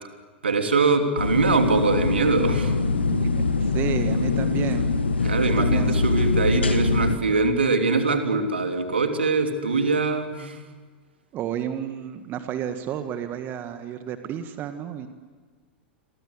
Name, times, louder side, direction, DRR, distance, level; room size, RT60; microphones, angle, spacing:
voice 1, 0.4-2.7 5.2-10.6, right 4 dB, 80° right, 5 dB, 3.0 m, -23 dB
sound 1, 1.2-7.2, left 4 dB, 80° left, 1.7 m, -23 dB
voice 2, 3.6-4.9 5.4-6.0 11.3-15.1, right 9 dB, 35° right, 9 dB, 1.8 m, -31 dB
29.0 x 23.5 x 8.2 m, 1.5 s
figure-of-eight pair, 90°, 6 cm